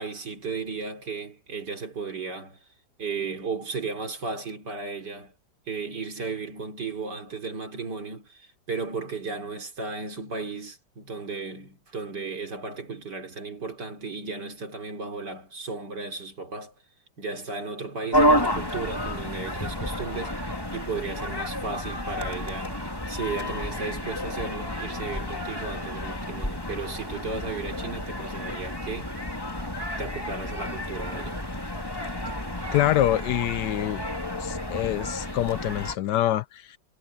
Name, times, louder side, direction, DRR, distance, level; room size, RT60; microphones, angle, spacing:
voice 1, 0.0-2.7 3.0-5.3 5.7-16.7 17.2-22.8 23.1-29.2 30.0-31.4, right 4 dB, 65° right, 3.8 m, -35 dB
sound 1, 18.1-36.0, equal, 10° left, 2.8 m, -30 dB
voice 2, 32.7-34.0 34.4-36.8, left 13 dB, 75° left, 1.1 m, -25 dB
omnidirectional pair, 2.0 m